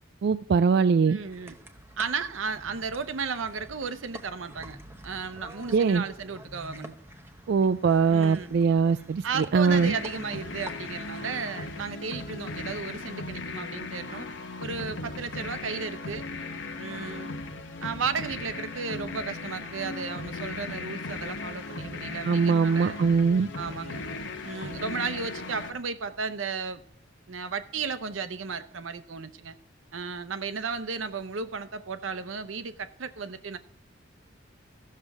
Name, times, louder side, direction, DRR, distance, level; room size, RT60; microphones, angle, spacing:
voice 1, 0.2-1.2 5.7-6.0 7.5-9.9 22.2-23.5, right 5 dB, 60° right, 0.3 m, -22 dB
voice 2, 1.1-1.5 2.0-4.8 5.0-6.9 8.1-8.6 9.2-14.3 14.6-16.2 16.7-17.4 17.8-23.0 23.5-24.0 24.4-26.8 27.3-29.6 29.9-33.6, right 5 dB, 90° right, 0.7 m, -34 dB
sound 1, 1.2-11.3, equal, 10° right, 0.8 m, -47 dB
sound 2, 9.7-25.7, left 3 dB, 70° left, 1.0 m, -37 dB
15.0 x 6.6 x 3.5 m
head